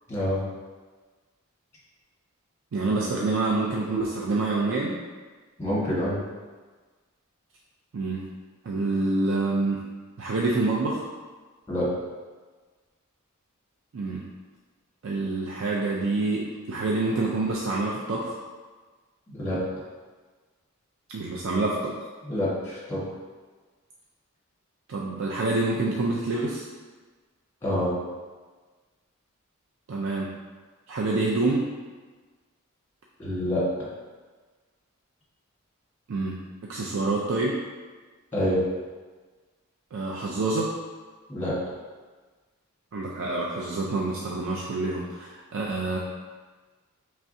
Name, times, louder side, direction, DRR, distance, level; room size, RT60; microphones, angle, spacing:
voice 1, 2.7-5.0 7.9-8.3 8.6-9.8 10.2-11.0 13.9-14.3 15.0-18.4 21.1-21.9 24.9-26.7 29.9-30.3 30.9-31.6 36.1-37.6 39.9-40.7 42.9-46.0, right 3 dB, 65° right, -3 dB, 0.4 m, -27 dB
voice 2, 5.6-6.2 11.7-11.9 19.3-19.6 22.3-23.0 27.6-27.9 33.2-33.6 38.3-38.6 41.3-41.5, left 1 dB, 10° left, -8 dB, 1.3 m, -27 dB
4.6 x 3.2 x 2.6 m, 1.4 s
head